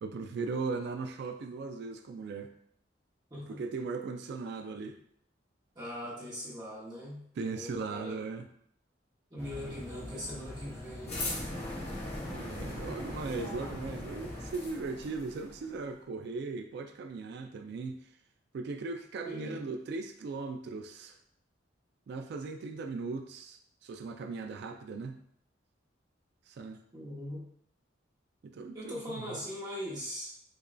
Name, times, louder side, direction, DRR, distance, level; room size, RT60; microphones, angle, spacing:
voice 1, 0.0-2.5 3.5-5.0 7.4-8.5 12.3-18.1 18.5-21.2 22.1-25.2 26.5-26.8 28.4-29.4, right 4 dB, 60° right, 5 dB, 0.3 m, -38 dB
voice 2, 5.7-7.2 7.5-8.2 9.3-11.2 19.2-19.6 26.9-27.4 28.7-30.3, equal, 25° right, -7 dB, 1.1 m, -41 dB
sound 1, 9.4-14.5, left 1 dB, 15° left, 0.6 m, -44 dB
sound 2, 11.1-15.9, left 1 dB, 35° left, 1.0 m, -40 dB
5.0 x 2.2 x 2.5 m, 0.67 s
head